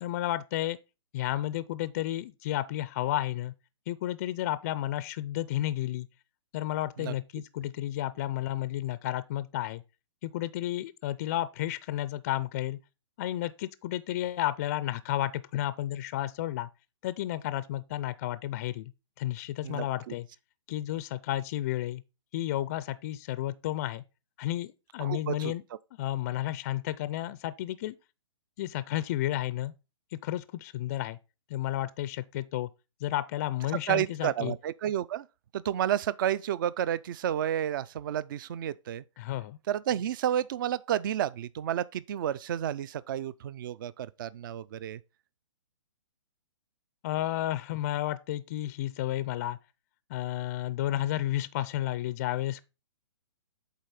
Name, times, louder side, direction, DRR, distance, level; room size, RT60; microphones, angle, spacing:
voice 1, 0.0-0.8 1.1-3.5 3.9-6.1 6.5-9.8 10.2-12.8 13.2-16.7 17.0-18.9 19.2-20.3 20.7-22.0 22.3-24.0 24.4-25.6 26.0-27.9 28.6-29.7 30.2-31.2 31.5-32.7 33.0-34.5 39.2-39.6 47.0-49.6 50.1-52.6, left 14 dB, 30° left, 0.4 m, -32 dB
voice 2, 19.6-20.1 25.0-25.5 33.9-35.3 35.5-39.0 39.7-45.0, right 10 dB, 40° right, 0.4 m, -31 dB
8.2 x 3.8 x 5.7 m
hypercardioid pair, 150°, 16 cm